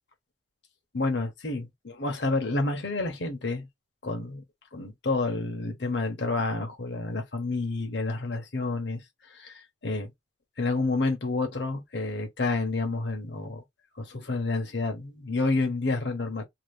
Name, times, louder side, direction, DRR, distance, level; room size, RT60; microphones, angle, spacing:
voice 1, 0.9-3.7 4.0-4.4 4.7-9.0 9.3-10.1 10.6-13.6 14.0-16.4, left 3 dB, 70° left, 1.0 m, -29 dB
2.9 x 2.4 x 3.3 m
head